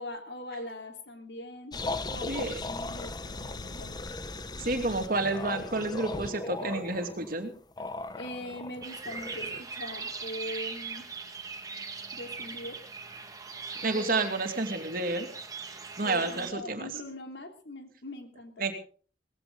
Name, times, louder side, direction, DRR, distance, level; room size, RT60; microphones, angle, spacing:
voice 1, 0.0-1.8 2.1-4.0 8.2-11.1 12.1-12.8 13.8-14.2 16.0-18.7, left 1 dB, 70° left, 5 dB, 3.0 m, -41 dB
sound 1, 1.7-9.6, left 2 dB, 25° left, 0.9 m, -38 dB
voice 2, 2.3-2.6 4.6-7.5 13.8-15.3 16.0-16.9 18.6-18.7, right 2 dB, 50° right, 6 dB, 2.7 m, -30 dB
sound 2, 8.8-16.5, right 4 dB, 20° right, 1.9 m, -40 dB
18.5 x 16.0 x 3.9 m, 0.41 s
head